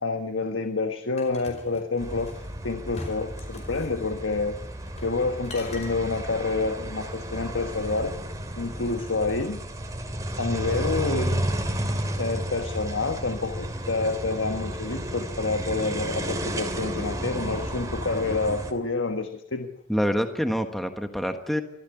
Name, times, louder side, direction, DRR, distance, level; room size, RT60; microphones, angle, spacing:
voice 1, 0.0-4.6 5.0-8.2 8.6-9.6 10.4-11.4 12.2-19.7, left 3 dB, 90° left, 7 dB, 1.4 m, -28 dB
sound 1, 1.2-2.5 2.9-3.9 4.9-5.2 5.4-5.9, left 1 dB, 35° left, 5.1 m, -41 dB
sound 2, 2.0-18.7, right 1 dB, 20° right, 2.7 m, -32 dB
voice 2, 19.9-21.6, equal, ahead, 6 dB, 1.4 m, -26 dB
24.5 x 15.0 x 8.2 m, 0.80 s
head